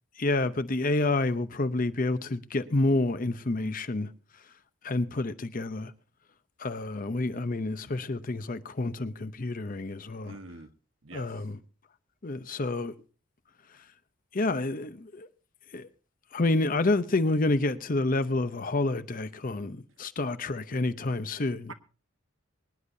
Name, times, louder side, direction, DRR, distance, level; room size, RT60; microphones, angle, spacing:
voice 1, 0.2-4.1 4.8-5.9 6.6-10.3 11.1-11.6 12.2-12.9 14.3-15.3 15.7-15.9 16.3-21.7, left 2 dB, 40° left, 0.7 m, -28 dB
voice 2, 10.2-10.7 11.0-11.5 21.7-21.8, right 3 dB, 70° right, 1.2 m, -45 dB
24.0 x 10.0 x 2.7 m
head